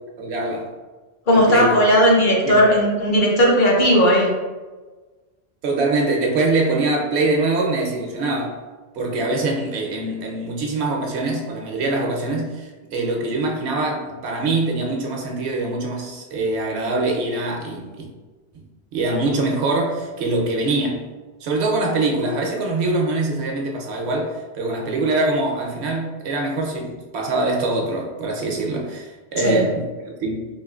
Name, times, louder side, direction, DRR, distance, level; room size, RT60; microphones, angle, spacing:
voice 1, 0.2-0.7 1.3-1.8 2.4-2.5 5.6-8.6 8.9-18.1 18.9-21.0 21.4-30.5, right 2 dB, 80° right, 0 dB, 0.9 m, -23 dB
voice 2, 1.3-4.3 29.4-29.6, equal, 55° left, -2 dB, 0.7 m, -16 dB
3.6 x 3.0 x 2.3 m, 1.3 s
omnidirectional pair, 1.1 m